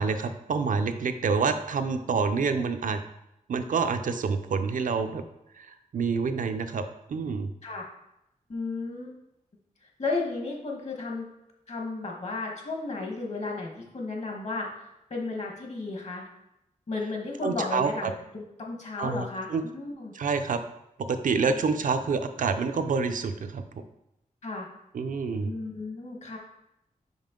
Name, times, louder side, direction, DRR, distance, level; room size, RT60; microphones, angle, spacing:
voice 1, 0.0-3.0 3.5-5.2 5.5-6.8 7.1-7.5 17.4-18.1 19.0-19.6 20.1-20.6 21.1-23.8 24.9-25.5, right 5 dB, 70° right, 8 dB, 0.5 m, -27 dB
voice 2, 8.5-9.1 10.0-11.2 11.7-14.7 15.1-16.3 16.9-20.1 24.4-24.7 25.4-26.4, left 3 dB, 55° left, 0 dB, 1.2 m, -33 dB
5.4 x 5.1 x 3.7 m, 0.85 s
wide cardioid pair, 150°, 14 cm